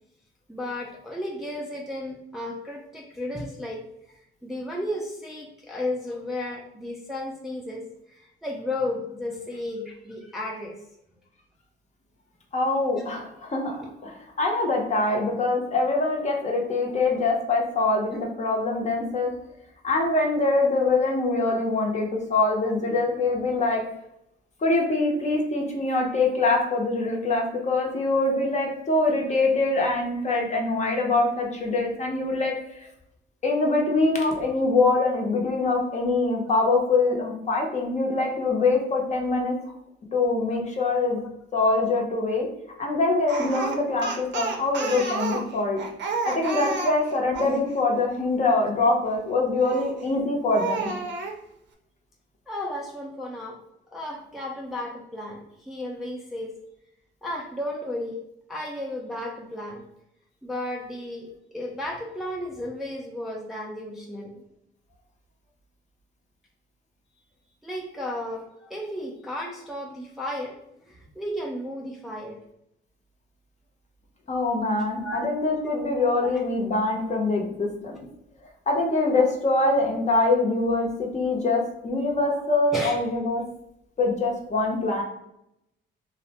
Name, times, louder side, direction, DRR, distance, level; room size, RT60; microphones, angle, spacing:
voice 1, 0.5-3.8 4.1-7.8 8.1-10.8 13.0-13.1 41.2-41.3 52.5-53.6 53.9-56.5 57.2-58.2 58.5-59.8 60.4-64.4 67.6-70.6 70.9-72.4 75.0-75.3 75.6-75.8 76.2-76.4 82.3-82.4 82.7-82.9, left 1 dB, ahead, -2 dB, 0.4 m, -34 dB
voice 2, 12.5-19.3 19.8-23.8 24.6-32.5 33.4-39.5 40.1-41.2 41.5-42.5 42.8-45.8 46.2-50.9 74.3-78.0 78.7-83.4 84.0-85.0, left 3 dB, 35° left, 1 dB, 0.7 m, -24 dB
Speech, 43.3-47.6 49.6-50.0 50.5-51.4, right 3 dB, 65° right, 0.5 m, -30 dB
2.5 x 2.0 x 2.8 m, 0.82 s
cardioid pair, 90°, 20 cm